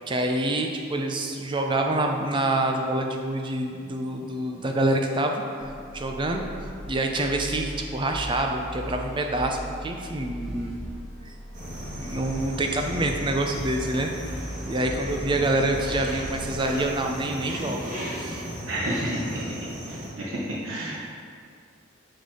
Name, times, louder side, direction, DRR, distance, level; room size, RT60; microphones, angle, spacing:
voice 1, 0.1-5.4 5.9-6.5 6.9-10.8 11.3-11.4 11.8-14.1 14.7-18.7, right 1 dB, 25° right, 3 dB, 0.5 m, -27 dB
sound 1, 5.6-17.0, equal, ahead, 1.1 m, -38 dB
sound 2, 11.5-20.1, equal, 40° right, 1.4 m, -36 dB
voice 2, 18.7-19.2 19.9-21.0, right 1 dB, 80° right, -6 dB, 1.0 m, -30 dB
6.4 x 4.1 x 4.8 m, 2.3 s
head